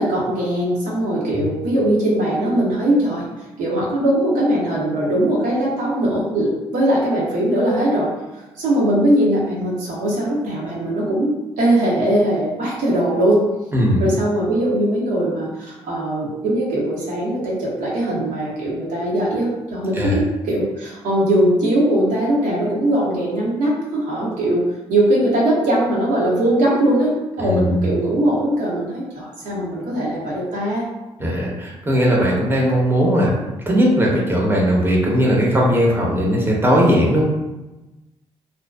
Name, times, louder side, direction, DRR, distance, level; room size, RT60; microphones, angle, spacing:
voice 1, 0.0-3.2 3.6-13.5 14.0-24.6 24.9-30.8, right 1 dB, 65° right, -5 dB, 0.7 m, -20 dB
voice 2, 13.7-14.1 19.9-20.2 27.4-27.9 31.2-33.3 33.7-37.3, equal, 15° right, -3 dB, 0.8 m, -18 dB
2.6 x 2.2 x 2.3 m, 1.1 s
figure-of-eight pair, 40°, 14 cm